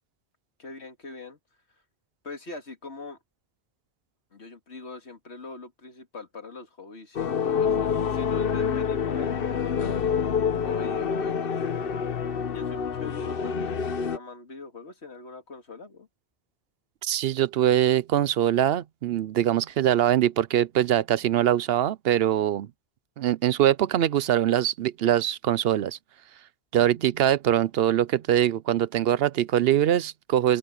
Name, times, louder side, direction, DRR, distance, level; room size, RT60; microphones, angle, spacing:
voice 1, 0.6-1.4 2.2-3.2 4.3-11.6 12.5-16.1, left 3 dB, 85° left, 2.7 m, -42 dB
sound 1, 7.1-14.2, left 7 dB, 60° left, 1.1 m, -27 dB
voice 2, 17.0-22.7 23.2-26.0 26.7-30.6, right 11 dB, 70° right, 0.8 m, -23 dB
open air
omnidirectional pair, 1.1 m